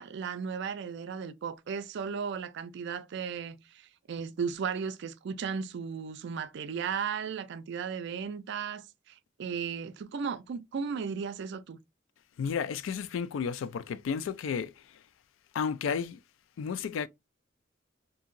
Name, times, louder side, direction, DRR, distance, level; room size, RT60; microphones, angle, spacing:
voice 1, 0.0-11.8, right 6 dB, 65° right, 0.4 m, -35 dB
voice 2, 12.4-15.0 15.5-16.2 16.6-17.1, left 6 dB, 80° left, 0.3 m, -32 dB
2.8 x 2.7 x 2.5 m
head